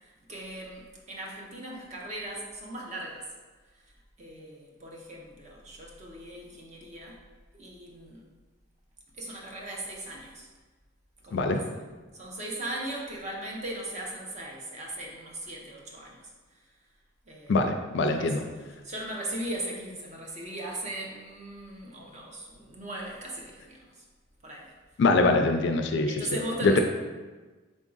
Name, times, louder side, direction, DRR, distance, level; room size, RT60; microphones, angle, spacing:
voice 1, 0.3-3.3 4.2-7.2 7.5-8.2 9.2-10.5 11.2-11.6 12.1-16.2 17.3-17.7 18.1-23.8 24.4-24.7 26.0-26.8, right 1 dB, 35° right, -1 dB, 0.7 m, -38 dB
voice 2, 11.3-11.6 17.5-18.4 25.0-26.3 26.6-26.8, left 3 dB, 55° left, 6 dB, 0.4 m, -23 dB
3.7 x 3.6 x 3.9 m, 1.3 s
head